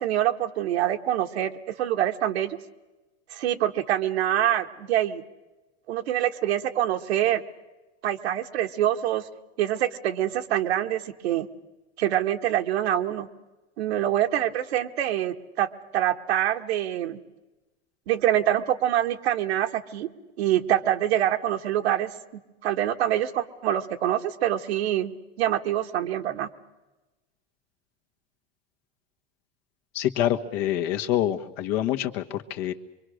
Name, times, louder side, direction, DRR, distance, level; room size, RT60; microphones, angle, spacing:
voice 1, 0.0-2.6 3.3-5.2 5.9-7.4 8.0-9.3 9.6-11.5 12.0-13.3 13.8-17.2 18.1-20.1 20.4-22.1 22.6-25.1 25.4-26.5, right 12 dB, 85° right, 6 dB, 1.6 m, -25 dB
voice 2, 29.9-32.7, left 12 dB, 70° left, 6 dB, 1.6 m, -26 dB
24.5 x 24.0 x 6.5 m, 1.1 s
supercardioid pair, 120°, 31 cm